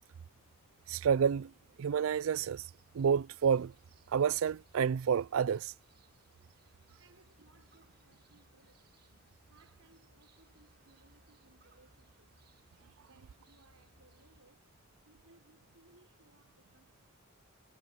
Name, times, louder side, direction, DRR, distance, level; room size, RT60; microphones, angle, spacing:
voice 1, 0.9-1.5 1.8-2.6 2.9-3.7 4.1-5.7, right 7 dB, 70° right, 0.4 m, -29 dB
sound 1, 2.0-14.4, right 2 dB, 50° right, 7.2 m, -68 dB
voice 2, 7.0-8.9 9.4-12.4 13.0-14.7 15.0-17.1, right 3 dB, 85° right, 4.5 m, -66 dB
head